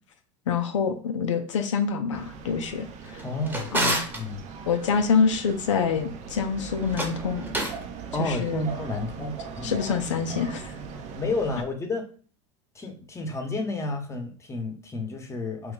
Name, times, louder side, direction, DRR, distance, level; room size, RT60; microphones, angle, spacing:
voice 1, 0.5-3.2 3.7-4.0 4.7-7.5 8.2-8.7 9.6-10.7, left 6 dB, 90° left, 6 dB, 0.4 m, -26 dB
sound 1, 2.1-11.6, right 5 dB, 50° right, 0.6 m, -40 dB
Drawer open or close, 3.0-4.2 6.8-7.8, right 1 dB, 10° right, 1.0 m, -29 dB
voice 2, 3.2-4.5 8.1-9.8 10.3-10.4 11.1-12.0 12.7-15.7, left 2 dB, 20° left, 4 dB, 0.9 m, -31 dB
3.1 x 2.3 x 3.7 m, 0.41 s
hypercardioid pair, 85°, 15 cm